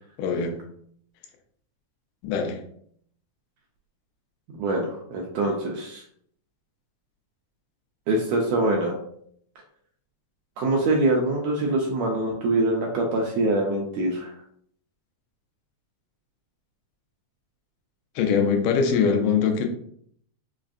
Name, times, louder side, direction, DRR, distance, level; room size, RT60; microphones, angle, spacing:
voice 1, 0.2-0.6 2.2-2.6 18.2-19.7, left 6 dB, 90° left, 4 dB, 2.2 m, -22 dB
voice 2, 4.6-6.0 8.1-9.0 10.6-14.3, right 2 dB, 80° right, -1 dB, 1.6 m, -24 dB
5.3 x 2.5 x 2.4 m, 0.65 s
omnidirectional pair, 3.6 m